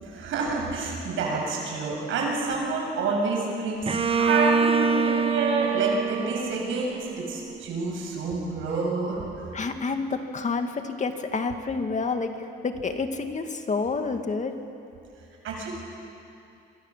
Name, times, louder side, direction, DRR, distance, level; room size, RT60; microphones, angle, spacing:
voice 1, 0.0-9.2 15.4-15.7, right 3 dB, 85° right, 0 dB, 7.5 m, -28 dB
Bowed string instrument, 3.9-7.6, right 5 dB, 30° right, 1.1 m, -25 dB
voice 2, 9.5-12.3 12.6-14.5, left 4 dB, 35° left, 6 dB, 2.2 m, -28 dB
25.5 x 25.5 x 7.6 m, 2.6 s
cardioid pair, 90°, 20 cm